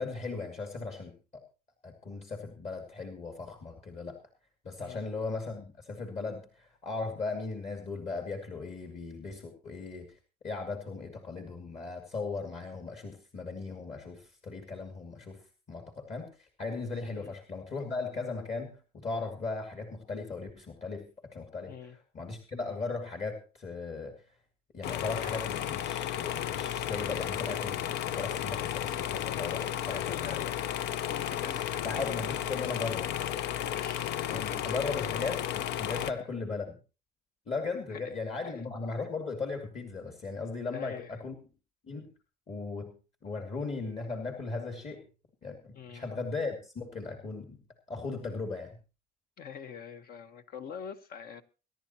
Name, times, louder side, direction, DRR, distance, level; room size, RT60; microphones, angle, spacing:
voice 1, 0.0-1.4 1.8-4.2 4.6-10.2 10.4-24.4 24.7-30.4 31.5-33.1 34.3-36.8 37.5-41.3 41.9-42.1 42.5-42.9 43.2-45.1 45.4-47.6 47.9-48.8, left 3 dB, 40° left, 2.7 m, -37 dB
sound 1, 24.8-36.1, left 11 dB, 85° left, 0.7 m, -33 dB
voice 2, 29.9-30.5 31.1-31.9 33.7-35.2 36.0-36.2 37.9-38.0 38.4-38.5 40.7-41.1 45.7-46.0 49.4-51.4, left 7 dB, 65° left, 1.3 m, -44 dB
23.5 x 11.0 x 3.0 m
cardioid pair, 110°, 17 cm